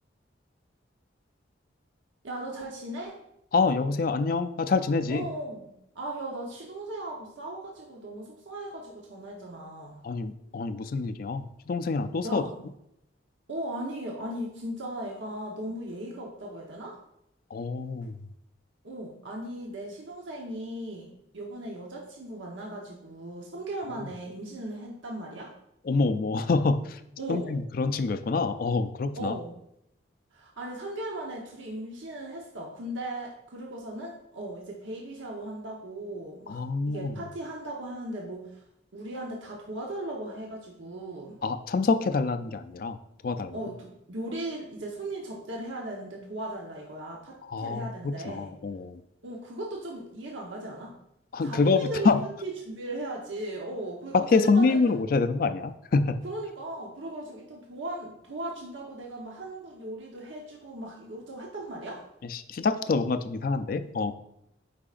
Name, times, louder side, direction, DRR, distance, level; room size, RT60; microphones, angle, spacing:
voice 1, 2.2-3.1 5.1-10.0 12.2-12.5 13.5-17.0 18.8-25.5 27.2-27.6 29.1-29.5 30.3-36.6 36.9-38.6 38.9-41.4 43.5-48.5 49.2-50.9 51.4-52.1 52.4-54.8 56.2-62.0, right 1 dB, 85° right, -2 dB, 1.0 m, -37 dB
voice 2, 3.5-5.3 10.0-12.4 17.5-18.2 24.0-24.1 25.8-27.0 27.3-29.3 36.5-37.2 41.4-43.0 43.2-43.6 47.4-49.0 51.3-52.2 54.1-56.2 62.2-64.1, left 4 dB, 50° left, 11 dB, 0.4 m, -26 dB
8.5 x 4.8 x 2.5 m, 0.78 s
head